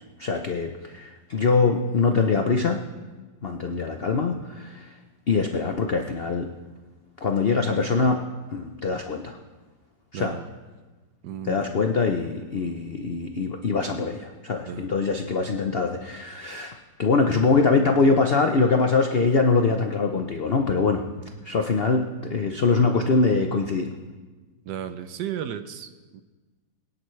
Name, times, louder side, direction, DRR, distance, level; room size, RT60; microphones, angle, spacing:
voice 1, 0.0-2.8 3.4-4.9 5.3-6.5 7.2-8.3 8.5-9.4 10.1-10.3 11.5-21.0 21.4-23.9, left 4 dB, 65° left, 4 dB, 0.5 m, -23 dB
voice 2, 10.1-10.5 11.2-11.6 14.6-14.9 24.6-26.2, right 9 dB, 70° right, 10 dB, 1.2 m, -34 dB
22.0 x 10.5 x 3.2 m, 1.3 s
omnidirectional pair, 2.0 m